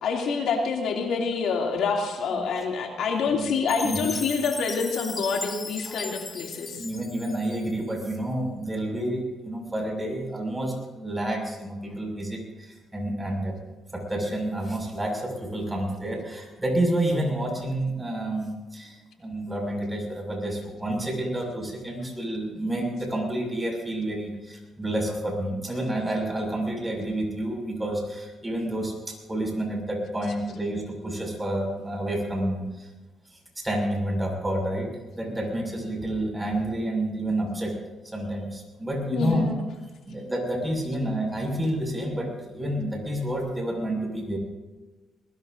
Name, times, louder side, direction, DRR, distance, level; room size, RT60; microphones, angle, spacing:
voice 1, 0.0-6.8 39.1-39.5, left 5 dB, 75° left, 0 dB, 2.7 m, -27 dB
Chime, 3.7-7.9, left 3 dB, 25° left, 0.7 m, -37 dB
voice 2, 3.8-4.2 5.9-6.0 6.7-13.6 13.9-32.9 33.6-37.7 38.1-39.6 40.1-44.4, right 1 dB, 15° right, 1 dB, 6.2 m, -29 dB
22.0 x 20.0 x 2.7 m, 1.2 s
cardioid pair, 90°, 0 cm